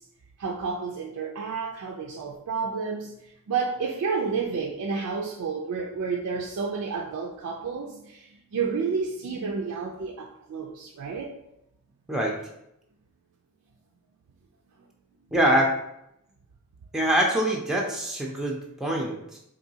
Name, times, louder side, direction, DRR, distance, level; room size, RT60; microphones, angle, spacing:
voice 1, 0.4-3.2 3.5-11.4, right 5 dB, 85° right, 0 dB, 0.4 m, -30 dB
voice 2, 15.3-15.7 16.9-19.4, right 1 dB, ahead, -2 dB, 0.4 m, -24 dB
3.7 x 2.6 x 2.7 m, 0.81 s
head